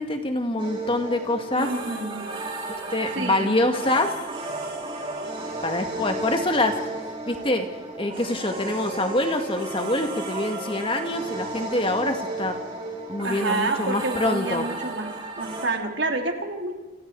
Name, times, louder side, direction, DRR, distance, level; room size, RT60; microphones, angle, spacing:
voice 1, 0.0-1.7 2.7-4.2 5.6-6.8 7.3-7.7 8.0-12.6 13.1-14.7, left 1 dB, 30° left, 5 dB, 2.1 m, -25 dB
sound 1, 0.6-15.7, right 2 dB, 30° right, 6.1 m, -34 dB
voice 2, 1.5-2.2 3.1-3.5 13.2-15.1 15.4-16.7, right 2 dB, 65° right, 3 dB, 3.5 m, -28 dB
30.0 x 29.0 x 4.9 m, 1.2 s
head